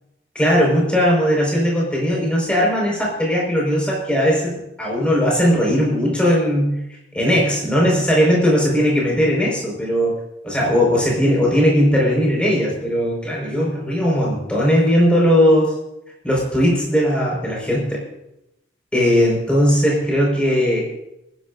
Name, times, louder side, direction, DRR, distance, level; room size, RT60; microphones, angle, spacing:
voice 1, 0.4-6.8 7.1-10.2 10.4-15.7 16.2-18.0 18.9-20.9, equal, 5° left, -3 dB, 5.3 m, -18 dB
28.5 x 10.5 x 2.7 m, 0.86 s
head